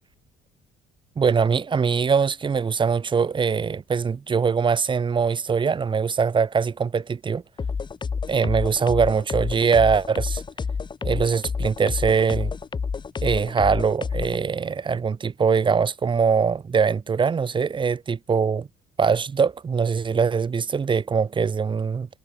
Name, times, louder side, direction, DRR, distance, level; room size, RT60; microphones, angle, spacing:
voice 1, 1.2-7.4 8.3-10.4 11.0-12.5 13.2-18.7 19.0-22.1, right 6 dB, 30° right, 1.3 m, -22 dB
sound 1, 7.6-14.4, left 5 dB, 25° left, 1.3 m, -29 dB
cardioid pair, 110°, 17 cm